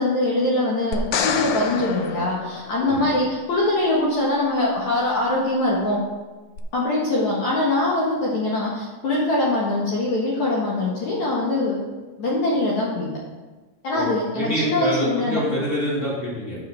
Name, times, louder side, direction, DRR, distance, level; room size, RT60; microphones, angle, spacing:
voice 1, 0.0-6.0 6.7-11.8 12.2-13.1 13.8-15.4, left 2 dB, 65° left, -5 dB, 2.8 m, -23 dB
sound 1, 0.9-3.2 6.6-6.7, left 6 dB, 85° left, 1.4 m, -27 dB
voice 2, 14.3-16.6, equal, 15° left, -7 dB, 3.5 m, -26 dB
11.0 x 5.7 x 5.7 m, 1.2 s
omnidirectional pair, 3.9 m